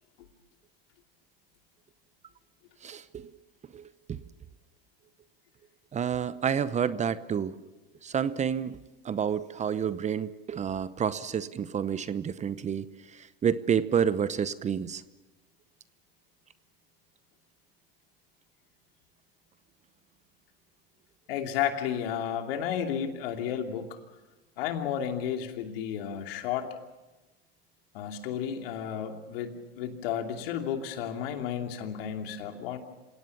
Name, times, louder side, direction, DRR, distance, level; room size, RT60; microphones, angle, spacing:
voice 1, 2.8-3.3 3.7-4.2 5.9-7.6 8.0-8.8 9.0-12.9 13.1-15.0, right 8 dB, 25° right, 15 dB, 0.8 m, -29 dB
voice 2, 21.3-24.0 24.6-26.7 27.9-32.8, left 9 dB, 75° left, 4 dB, 2.9 m, -32 dB
27.0 x 17.5 x 7.2 m, 1.1 s
supercardioid pair, 110°, 29 cm